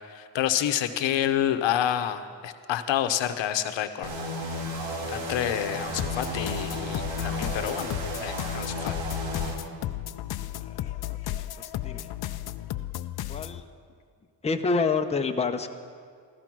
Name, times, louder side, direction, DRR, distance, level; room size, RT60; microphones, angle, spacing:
voice 1, 0.1-4.1 5.1-9.0, left 11 dB, 85° left, 9 dB, 1.0 m, -28 dB
sound 1, 4.0-9.6, equal, 85° right, 2.3 m, -33 dB
sound 2, 6.0-13.6, left 14 dB, 60° left, 0.5 m, -34 dB
voice 2, 13.3-13.6 14.4-15.7, left 4 dB, 15° left, 5 dB, 0.7 m, -27 dB
15.0 x 14.0 x 6.1 m, 2.1 s
cardioid pair, 120°, 43 cm